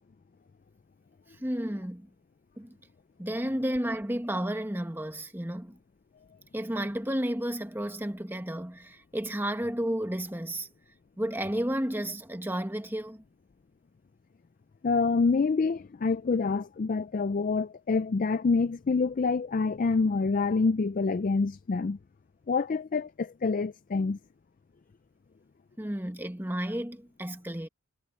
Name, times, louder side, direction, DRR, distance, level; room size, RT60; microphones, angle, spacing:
voice 1, 1.4-2.1 2.6-2.8 3.2-5.8 6.5-10.7 11.2-13.2 25.8-27.7, right 1 dB, 10° right, 1.4 m, -32 dB
voice 2, 14.8-22.0 22.5-24.2, left 4 dB, 35° left, 0.3 m, -27 dB
head